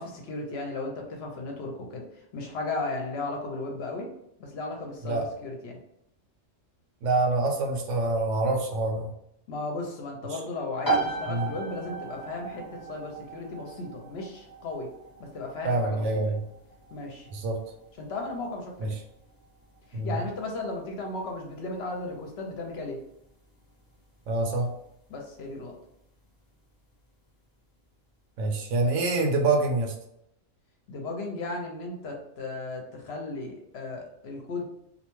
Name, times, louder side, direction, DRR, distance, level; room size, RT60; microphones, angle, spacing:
voice 1, 0.0-2.0 2.3-4.1 4.4-5.8 9.5-14.9 15.2-16.0 16.9-17.3 18.0-18.9 19.9-23.0 25.1-25.7 30.9-34.6, left 2 dB, 65° left, 1 dB, 0.8 m, -35 dB
voice 2, 7.0-9.1 10.3-10.4 11.3-11.5 15.6-16.4 17.3-17.6 18.8-18.9 19.9-20.1 24.3-24.7 28.4-29.9, right 2 dB, 75° right, 3 dB, 0.9 m, -26 dB
sound 1, 10.8-25.3, right 3 dB, 25° left, 0.5 m, -37 dB
2.5 x 2.1 x 3.0 m, 0.76 s
omnidirectional pair, 1.3 m